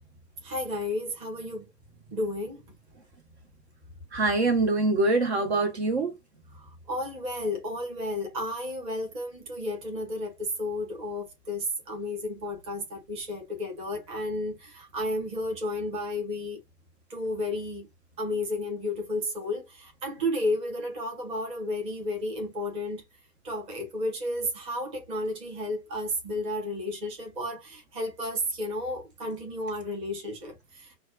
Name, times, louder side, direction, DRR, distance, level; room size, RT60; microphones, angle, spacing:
voice 1, 0.4-1.7 2.0-2.7 6.5-16.6 17.1-17.9 18.2-23.0 23.4-30.9, left 1 dB, 10° right, 0.9 m, -32 dB
voice 2, 4.1-6.1, right 2 dB, 40° right, 0.8 m, -24 dB
6.2 x 2.3 x 2.3 m
figure-of-eight pair, 125°, 50 cm